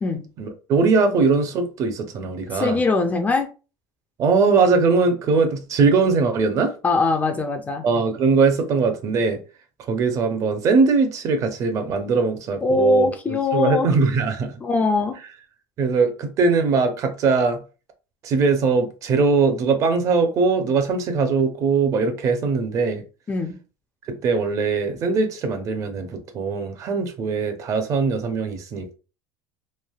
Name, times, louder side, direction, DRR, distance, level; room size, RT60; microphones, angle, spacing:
voice 1, 0.4-2.8 4.2-6.7 7.8-9.4 9.9-13.1 13.5-14.5 15.8-17.6 18.2-23.0 24.1-28.9, right 4 dB, 35° right, 0.5 m, -21 dB
voice 2, 2.5-3.5 6.8-7.8 12.6-13.9 14.6-15.1 23.3-23.6, left 3 dB, 15° left, 0.3 m, -21 dB
3.1 x 2.5 x 2.3 m
cardioid pair, 150°, 9 cm